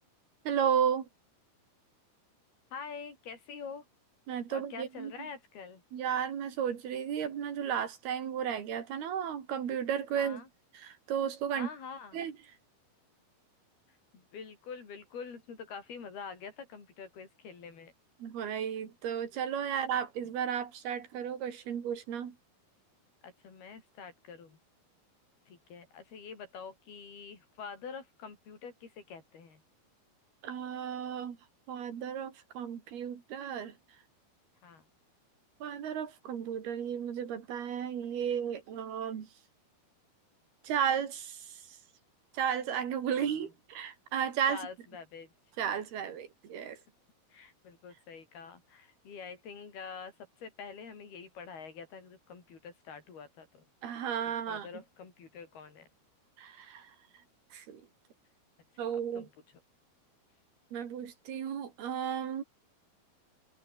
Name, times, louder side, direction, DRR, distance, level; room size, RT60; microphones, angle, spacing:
voice 1, 0.5-1.1 4.3-5.1 5.9-10.4 10.7-11.7 12.1-12.3 18.2-22.4 30.4-31.4 31.7-33.7 35.6-39.3 40.6-41.6 42.3-44.6 45.6-46.8 53.8-54.7 56.4-56.9 57.5-57.8 58.8-59.3 60.7-62.4, right 8 dB, 75° right, 4.8 m, -34 dB
voice 2, 2.7-3.9 4.5-5.8 10.1-10.5 11.6-12.3 13.9-17.9 19.7-19.8 23.2-24.6 25.5-29.6 34.6-34.9 43.1-43.4 44.5-45.3 47.3-50.1 50.4-53.7 54.3-55.9 59.1-59.3, left 6 dB, 70° left, 7.4 m, -46 dB
omnidirectional pair, 4.6 m